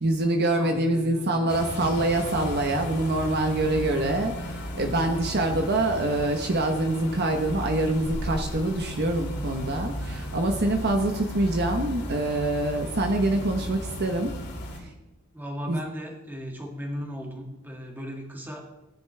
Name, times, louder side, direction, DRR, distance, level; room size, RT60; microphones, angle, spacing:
voice 1, 0.0-4.3 4.7-14.3 15.7-15.8, right 2 dB, 50° right, 4 dB, 1.0 m, -25 dB
voice 2, 0.6-1.6 14.8-14.9 15.3-18.7, equal, 10° right, 0 dB, 2.1 m, -37 dB
sound 1, 1.5-14.8, equal, 50° left, 2.4 m, -35 dB
17.5 x 10.5 x 3.3 m, 0.99 s
head